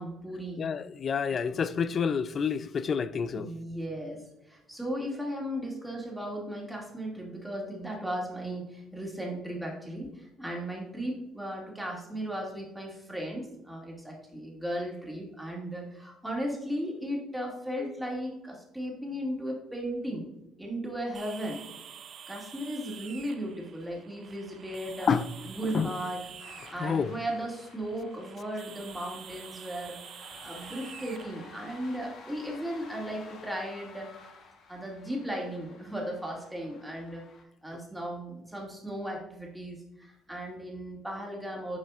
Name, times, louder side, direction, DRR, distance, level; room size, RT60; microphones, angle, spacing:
voice 1, 0.0-0.6 3.3-20.3 20.6-21.6 22.3-25.1 25.5-26.2 26.7-30.0 30.4-34.1 34.7-37.2 37.6-41.8, equal, 5° right, 2.0 m, -36 dB
voice 2, 0.6-3.5 25.1-25.2 25.7-25.9 26.8-27.1, left 6 dB, 45° left, 0.3 m, -28 dB
sound 1, 21.1-32.0, right 8 dB, 55° right, 0.5 m, -48 dB
sound 2, 26.4-37.4, left 4 dB, 65° left, 1.2 m, -52 dB
8.1 x 4.7 x 2.4 m
supercardioid pair, 80°, 0 cm